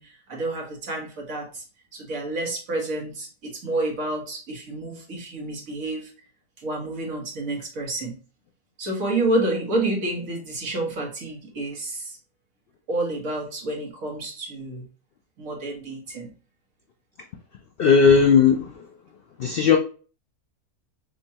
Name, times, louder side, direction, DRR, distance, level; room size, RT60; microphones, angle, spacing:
voice 1, 0.0-1.6 1.9-6.1 6.6-8.2 8.8-12.2 12.9-14.8 15.4-16.3, right 2 dB, 65° right, -1 dB, 1.7 m, -29 dB
voice 2, 17.8-18.9 19.4-19.8, left 6 dB, 75° left, 4 dB, 0.5 m, -17 dB
6.6 x 2.2 x 2.8 m, 0.37 s
omnidirectional pair, 1.6 m